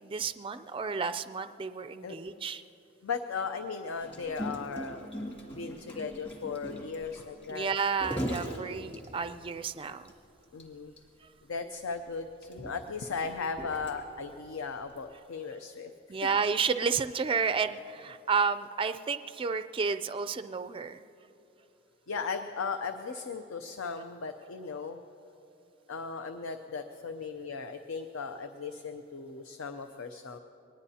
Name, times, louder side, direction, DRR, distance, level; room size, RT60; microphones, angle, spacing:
voice 1, 0.0-2.6 7.5-10.1 16.1-21.1, right 5 dB, 25° right, 10 dB, 0.4 m, -31 dB
voice 2, 3.0-5.1 5.5-7.7 10.5-10.9 11.5-16.3 22.1-25.0 25.9-30.4, left 5 dB, 75° left, 8 dB, 0.6 m, -37 dB
Gurgling, 4.0-9.5 10.1-10.2 10.4-10.6 11.0-11.1 11.8-14.3 15.0-15.1, equal, 25° left, 2.0 m, -39 dB
23.5 x 20.0 x 2.8 m, 3.0 s
head